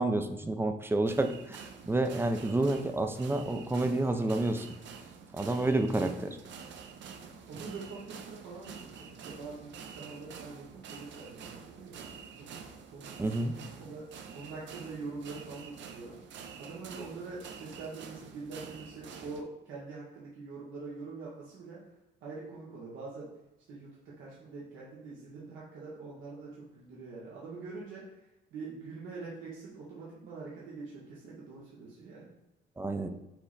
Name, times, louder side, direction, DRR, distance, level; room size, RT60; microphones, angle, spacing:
voice 1, 0.0-1.6 1.9-4.7 5.3-6.4 13.2-13.5 32.8-33.1, right 2 dB, 10° right, 7 dB, 0.4 m, -29 dB
sound 1, 1.1-19.4, right 6 dB, 65° right, 0.5 m, -48 dB
voice 2, 7.5-12.6 12.9-14.1 14.3-21.9 22.2-23.3 23.7-28.2 28.5-32.3, right 4 dB, 85° right, -6 dB, 1.0 m, -44 dB
5.7 x 2.1 x 3.9 m, 0.96 s
cardioid pair, 90°, 20 cm